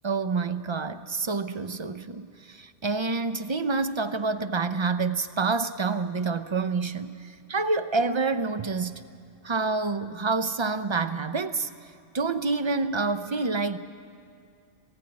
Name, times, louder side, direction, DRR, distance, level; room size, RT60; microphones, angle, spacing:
voice 1, 0.0-9.0 9.4-11.7 12.1-13.8, right 4 dB, 35° right, 10 dB, 0.4 m, -28 dB
19.5 x 15.5 x 9.5 m, 2.3 s
omnidirectional pair, 1.2 m